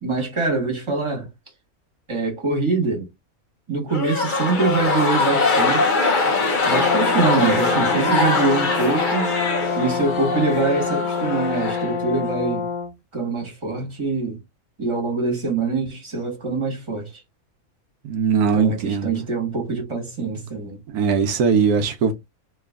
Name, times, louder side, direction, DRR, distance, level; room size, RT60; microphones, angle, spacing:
voice 1, 0.0-1.3 2.1-3.1 3.7-6.0 6.6-9.3 9.7-12.7 13.1-14.4 14.8-17.2 18.5-20.8, right 4 dB, 20° right, 1.5 m, -24 dB
sound 1, 3.9-12.3, left 3 dB, 40° left, 0.9 m, -22 dB
Brass instrument, 6.7-12.9, left 6 dB, 85° left, 1.2 m, -27 dB
voice 2, 18.0-19.1 20.9-22.1, right 6 dB, 90° right, 1.2 m, -20 dB
3.2 x 3.0 x 3.5 m
omnidirectional pair, 1.5 m